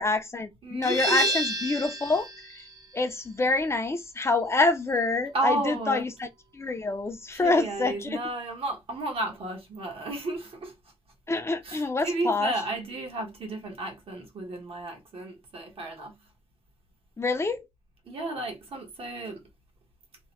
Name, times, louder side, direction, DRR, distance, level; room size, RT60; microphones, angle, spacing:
voice 1, 0.0-2.3 2.5-2.6 2.9-6.3 6.5-8.2 11.3-12.5 17.2-17.6, left 3 dB, 25° left, 0.4 m, -26 dB
voice 2, 0.6-1.4 5.3-6.0 7.3-10.7 11.6-16.2 18.0-19.4, right 2 dB, 70° right, 1.0 m, -33 dB
sound 1, 0.8-6.2, equal, 40° right, 0.5 m, -33 dB
2.8 x 2.0 x 2.9 m
wide cardioid pair, 145°, 10 cm